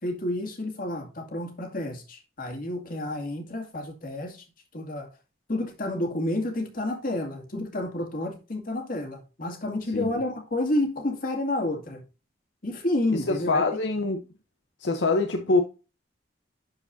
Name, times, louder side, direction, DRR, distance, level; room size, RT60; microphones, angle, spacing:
voice 1, 0.0-4.4 4.7-5.1 5.5-12.0 12.6-13.6, left 1 dB, 50° left, 2.3 m, -30 dB
voice 2, 13.1-14.2 14.8-15.6, left 3 dB, 80° left, 0.9 m, -24 dB
11.5 x 4.9 x 2.6 m
head